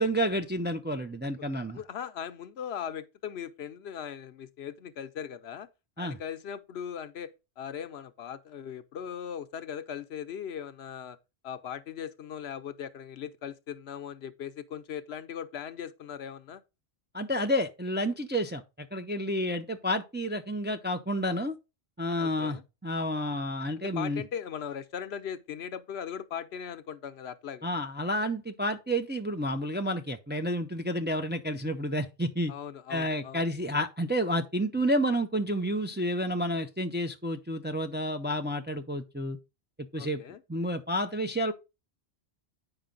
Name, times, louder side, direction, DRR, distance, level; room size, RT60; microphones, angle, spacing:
voice 1, 0.0-1.8 6.0-6.2 17.1-21.6 22.0-24.2 27.6-32.5 32.9-39.4 39.9-40.2 40.5-41.5, equal, 15° right, 0.5 m, -30 dB
voice 2, 1.7-5.7 6.0-11.2 11.4-16.6 22.2-22.6 23.8-27.7 32.5-33.4 40.0-40.4, left 8 dB, 75° left, 0.9 m, -39 dB
8.9 x 5.2 x 3.8 m
omnidirectional pair, 1.1 m